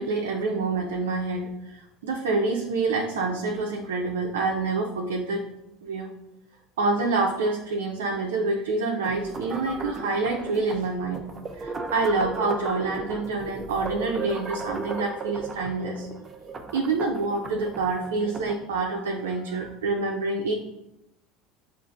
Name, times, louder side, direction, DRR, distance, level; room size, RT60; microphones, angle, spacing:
voice 1, 0.0-5.4 5.8-6.1 6.8-11.2 11.5-16.1 16.7-20.5, right 3 dB, 90° right, 0 dB, 0.5 m, -27 dB
sound 1, 9.0-18.6, right 3 dB, 30° right, 0.5 m, -35 dB
6.9 x 2.5 x 2.5 m, 0.91 s
supercardioid pair, 90°, 0 cm